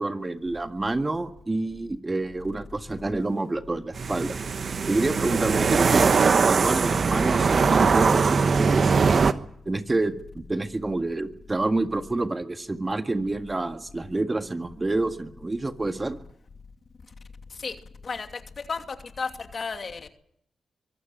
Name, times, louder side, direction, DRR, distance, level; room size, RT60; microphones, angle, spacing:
voice 1, 0.0-4.4 4.9-6.1 6.5-9.3 9.7-16.2, right 2 dB, 30° right, 1.8 m, -28 dB
sound 1, 3.9-9.3, right 5 dB, 60° right, 1.2 m, -21 dB
voice 2, 18.0-18.4 18.7-20.1, left 5 dB, 55° left, 2.7 m, -33 dB
24.0 x 16.0 x 9.3 m
supercardioid pair, 45°, 0 cm